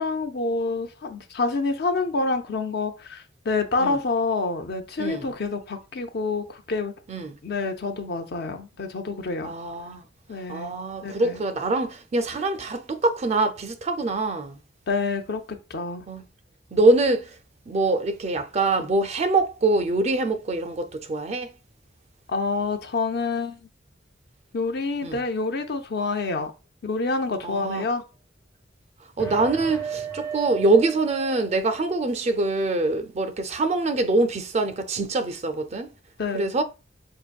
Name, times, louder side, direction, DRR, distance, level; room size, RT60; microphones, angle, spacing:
voice 1, 0.0-6.9 7.4-9.5 10.3-10.7 11.0-11.4 14.9-16.1 22.3-23.7 24.5-26.5 26.8-28.0 36.2-36.5, left 3 dB, 55° left, 0.6 m, -27 dB
voice 2, 5.0-5.3 7.1-7.3 9.4-10.0 10.5-14.6 16.1-16.2 16.7-17.3 17.7-21.5 25.0-25.2 27.4-27.9 29.2-35.9 36.3-36.6, right 2 dB, 35° right, 0.4 m, -24 dB
sound 1, 29.2-31.9, right 7 dB, 15° left, 0.5 m, -34 dB
5.6 x 2.6 x 2.3 m
head